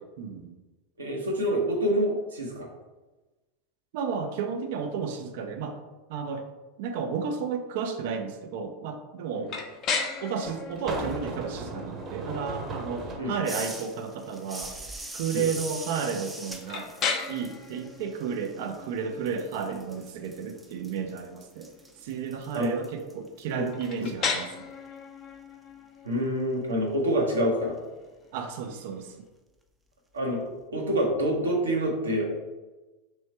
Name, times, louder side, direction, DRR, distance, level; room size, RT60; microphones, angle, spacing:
voice 1, 0.2-0.5 3.9-5.8 6.1-6.5 6.8-9.5 10.2-14.8 15.1-17.0 17.3-21.7 22.0-24.5 28.3-29.1, right 6 dB, 60° right, 6 dB, 0.4 m, -32 dB
voice 2, 1.0-2.7 9.4-9.5 13.2-13.3 15.3-15.4 22.5-22.7 23.5-23.7 24.0-24.1 26.0-27.8 30.1-32.3, equal, 80° right, -1 dB, 1.0 m, -27 dB
sound 1, 9.3-9.4 10.4-13.3 14.6-15.0, right 2 dB, 30° right, 0.9 m, -36 dB
sound 2, 9.5-29.2, left 5 dB, 40° left, 0.6 m, -38 dB
sound 3, 13.4-19.0 19.3-24.1, right 2 dB, 10° right, 0.5 m, -42 dB
3.1 x 3.0 x 4.4 m, 1.1 s
figure-of-eight pair, 85°, 0 cm